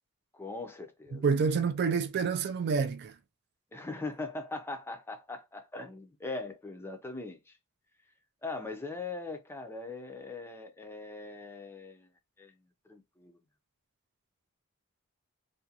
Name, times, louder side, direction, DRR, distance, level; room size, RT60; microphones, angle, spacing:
voice 1, 0.3-1.2 3.7-7.6 8.4-12.1 12.4-12.5 12.9-13.4, left 3 dB, 10° left, 0.5 m, -40 dB
voice 2, 1.1-3.1, right 5 dB, 50° right, 0.3 m, -28 dB
2.5 x 2.2 x 2.7 m
head